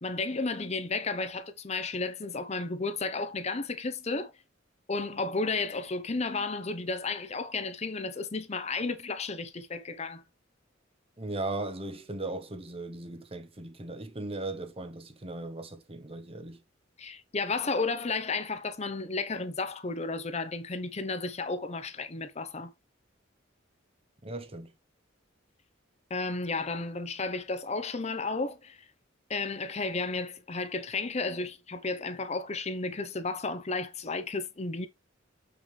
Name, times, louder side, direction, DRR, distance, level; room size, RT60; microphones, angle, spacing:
voice 1, 0.0-4.3 4.9-10.2 17.0-22.7 26.1-28.9 29.3-34.9, left 3 dB, 35° left, 0.8 m, -33 dB
voice 2, 11.2-16.6 24.2-24.7, right 2 dB, 30° right, 1.1 m, -37 dB
7.3 x 6.2 x 3.3 m
head